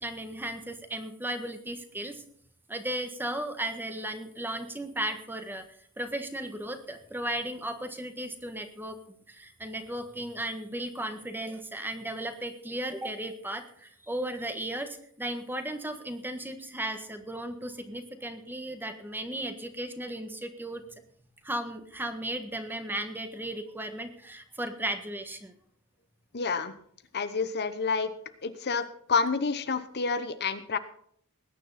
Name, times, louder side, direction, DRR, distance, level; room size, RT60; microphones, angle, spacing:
voice 1, 0.0-2.2 2.7-5.6 6.0-9.0 9.3-20.8 21.4-25.5, right 1 dB, 10° right, 7 dB, 1.5 m, -35 dB
voice 2, 26.3-26.7 27.1-28.1 28.4-28.8 29.1-30.8, left 4 dB, 50° left, 11 dB, 1.0 m, -28 dB
20.5 x 9.8 x 4.2 m, 0.64 s
head